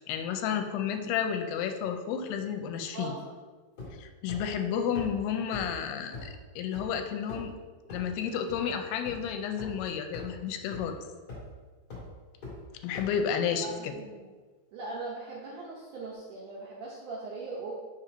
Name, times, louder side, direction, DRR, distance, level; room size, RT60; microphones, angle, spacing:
voice 1, 0.1-3.2 4.0-7.6 7.9-11.0 12.8-14.0, left 7 dB, 85° left, 6 dB, 2.5 m, -31 dB
voice 2, 2.9-3.3 13.5-14.3 14.7-17.7, right 3 dB, 75° right, -5 dB, 1.8 m, -40 dB
sound 1, 3.8-4.0 4.3-4.4 4.9-5.0 5.5-5.6 6.1-6.2 6.7-6.8 7.3-7.5 7.9-8.0 8.5-8.6 9.0-9.1 9.6-9.7 10.1-10.2 10.7-10.8 11.3-11.5 11.9-12.0 12.4-12.5 12.9-13.0, left 4 dB, 35° left, 1.8 m, -40 dB
5.7 x 4.4 x 5.0 m, 1.4 s
omnidirectional pair, 4.6 m